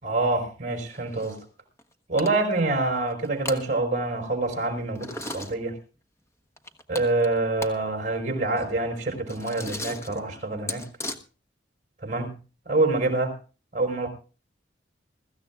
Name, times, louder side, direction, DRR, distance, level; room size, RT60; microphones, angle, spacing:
voice 1, 0.0-1.4 2.1-5.7 6.9-10.8 12.0-12.3 12.6-13.3 13.7-14.1, right 2 dB, 45° right, 4 dB, 5.1 m, -26 dB
sound 1, 0.9-1.4 1.8-1.9 2.2-2.6 3.1-3.6 4.9-5.5 6.6-7.8 8.1-8.2 8.4-11.2, left 2 dB, 15° left, 1.2 m, -37 dB
23.0 x 15.0 x 2.4 m, 0.35 s
head